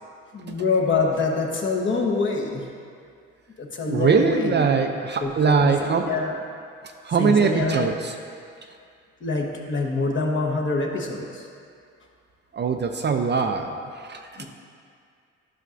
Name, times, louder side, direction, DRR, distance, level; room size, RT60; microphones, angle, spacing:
voice 1, 0.3-2.7 3.6-4.6 5.2-6.4 7.2-7.9 9.2-11.5 14.4-14.5, left 3 dB, 40° left, 0 dB, 1.1 m, -25 dB
voice 2, 3.8-6.1 7.1-8.1 12.5-14.2, right 5 dB, 35° right, 5 dB, 0.4 m, -22 dB
11.0 x 5.6 x 2.5 m, 2.3 s
cardioid pair, 90°, 30 cm